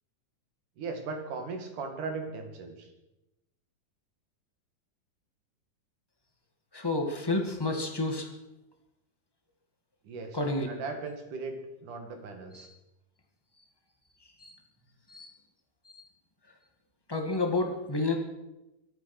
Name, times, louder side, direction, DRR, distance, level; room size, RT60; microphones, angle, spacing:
voice 1, 0.8-2.9 10.0-12.7, right 4 dB, 70° right, 5 dB, 3.6 m, -38 dB
voice 2, 6.7-8.3 10.3-10.7 14.4-14.5 15.1-15.3 17.1-18.1, left 2 dB, 15° left, 3 dB, 0.9 m, -29 dB
24.0 x 8.8 x 6.0 m, 0.95 s
omnidirectional pair, 3.8 m